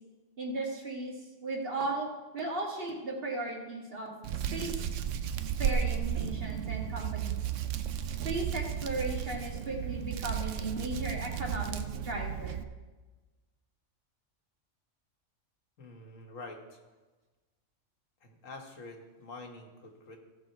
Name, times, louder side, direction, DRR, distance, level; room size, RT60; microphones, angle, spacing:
voice 1, 0.4-4.1 4.5-4.9 5.6-7.4 8.1-12.6, right 2 dB, 45° right, 0 dB, 1.8 m, -36 dB
Hands, 4.2-12.6, right 9 dB, 75° right, 1.0 m, -34 dB
voice 2, 15.8-16.8 18.2-20.2, left 2 dB, 80° left, 2 dB, 1.7 m, -47 dB
15.5 x 6.3 x 4.5 m, 1.2 s
omnidirectional pair, 1.3 m